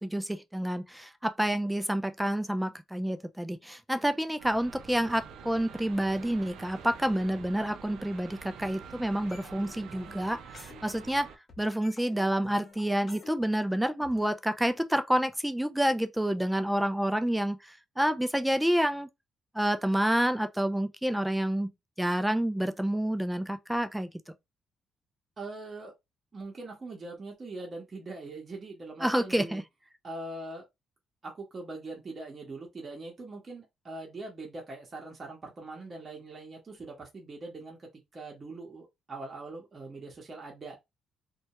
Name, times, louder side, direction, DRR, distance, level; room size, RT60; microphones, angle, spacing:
voice 1, 0.0-11.3 11.6-19.1 19.5-21.7 22.0-24.1 29.0-29.6, right 1 dB, 5° right, 0.4 m, -28 dB
sound 1, 4.4-11.4, right 6 dB, 80° right, 0.4 m, -47 dB
sound 2, 9.3-11.2 11.5-14.3, left 3 dB, 40° left, 0.7 m, -51 dB
voice 2, 25.4-25.9 26.3-29.6 30.0-30.6 31.2-40.8, right 2 dB, 35° right, 0.8 m, -42 dB
2.2 x 2.0 x 2.8 m
cardioid pair, 90°, 0 cm